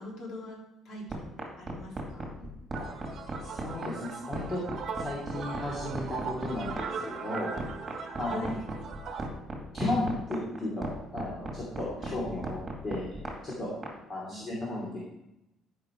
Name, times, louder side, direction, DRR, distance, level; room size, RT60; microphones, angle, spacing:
voice 1, 0.0-2.3 8.2-8.6 12.0-12.2 14.3-14.4, left 1 dB, 50° left, -1 dB, 3.1 m, -44 dB
sound 1, 1.1-13.9, right 2 dB, 20° right, 2.2 m, -36 dB
sound 2, 2.7-9.3, right 5 dB, 40° right, 1.3 m, -39 dB
voice 2, 3.4-4.6 4.9-7.5 8.2-8.5 9.7-12.6 12.8-13.1 13.4-13.7 14.1-15.0, left 1 dB, 30° left, -5 dB, 2.7 m, -34 dB
13.5 x 5.7 x 4.5 m, 0.89 s
cardioid pair, 150°, 0 cm